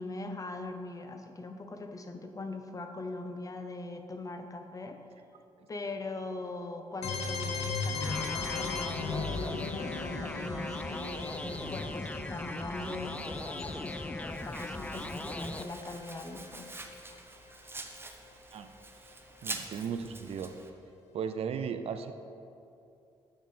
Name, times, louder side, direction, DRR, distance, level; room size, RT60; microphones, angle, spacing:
voice 1, 0.0-5.0 5.7-16.7 17.1-17.2, left 2 dB, 30° left, 6 dB, 0.8 m, -41 dB
sound 1, 7.0-16.8, left 4 dB, 75° left, 0.7 m, -38 dB
sound 2, 8.0-15.6, left 2 dB, 10° left, 0.4 m, -39 dB
Domestic sounds home sounds, 14.3-20.7, right 2 dB, 20° right, 0.8 m, -45 dB
voice 2, 19.4-20.5 21.1-22.1, right 7 dB, 60° right, 9 dB, 0.5 m, -36 dB
7.4 x 5.9 x 4.2 m, 2.7 s
supercardioid pair, 55°, 11 cm